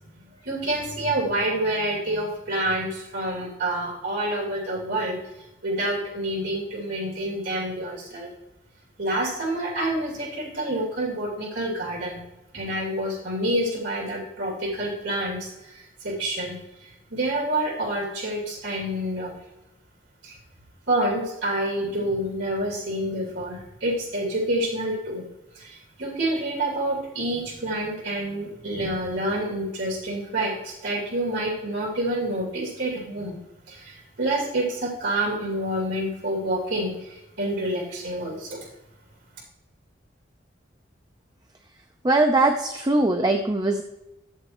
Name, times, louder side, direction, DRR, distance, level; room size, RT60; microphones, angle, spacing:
voice 1, 0.4-5.2 5.6-8.3 9.0-12.2 12.5-16.5 16.8-19.4 20.2-20.3 20.9-25.2 25.5-33.4 33.7-38.6, right 1 dB, 75° right, -2 dB, 2.6 m, -28 dB
voice 2, 42.0-43.8, right 2 dB, 20° right, 4 dB, 0.5 m, -21 dB
13.5 x 7.5 x 3.0 m, 0.94 s
head